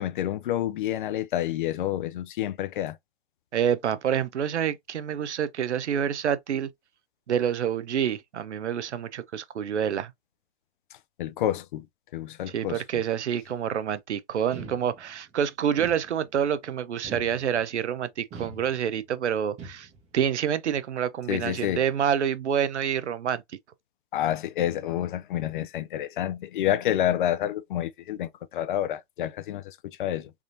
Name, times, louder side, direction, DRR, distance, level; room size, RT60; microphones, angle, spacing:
voice 1, 0.0-3.0 11.2-11.8 12.1-12.8 21.3-21.8 24.1-30.3, left 12 dB, 50° left, 0.4 m, -28 dB
voice 2, 3.5-6.7 7.3-10.1 12.5-19.9 20.1-23.4, right 8 dB, 80° right, 0.6 m, -27 dB
sound 1, 14.5-15.3 15.8-16.5 17.0-17.8 18.3-19.1 19.6-20.2, right 4 dB, 20° right, 0.7 m, -43 dB
3.5 x 2.5 x 2.5 m
hypercardioid pair, 120°, 34 cm